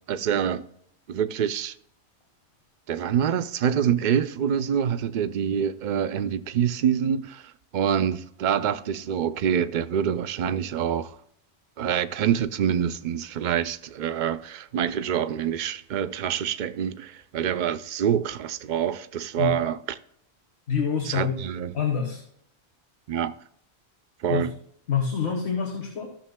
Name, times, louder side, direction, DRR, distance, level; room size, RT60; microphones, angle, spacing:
voice 1, 0.1-0.7 1.1-1.7 2.9-11.2 11.8-19.8 21.1-21.8 23.1-23.3 24.2-24.5, right 8 dB, 55° right, 0.6 m, -26 dB
voice 2, 20.7-21.3 21.7-22.2 24.3-24.5 24.9-26.1, left 7 dB, 80° left, 1.6 m, -26 dB
16.0 x 6.8 x 2.2 m
omnidirectional pair, 1.1 m